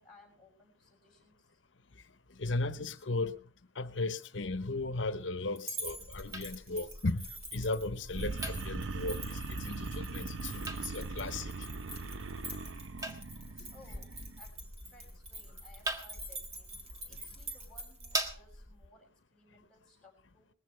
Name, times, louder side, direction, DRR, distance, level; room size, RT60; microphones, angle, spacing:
voice 1, 0.0-1.6 13.7-14.5 14.9-16.7 17.0-20.5, left 2 dB, 5° left, 6.6 m, -61 dB
voice 2, 2.4-3.4 3.8-7.3 7.5-11.5, left 2 dB, 80° left, 1.0 m, -36 dB
sound 1, 5.6-18.2, right 1 dB, 35° right, 2.8 m, -46 dB
sound 2, 5.9-18.9, right 1 dB, 20° right, 1.5 m, -44 dB
sound 3, 8.1-14.4, right 3 dB, 85° right, 0.7 m, -40 dB
20.0 x 15.5 x 3.3 m
head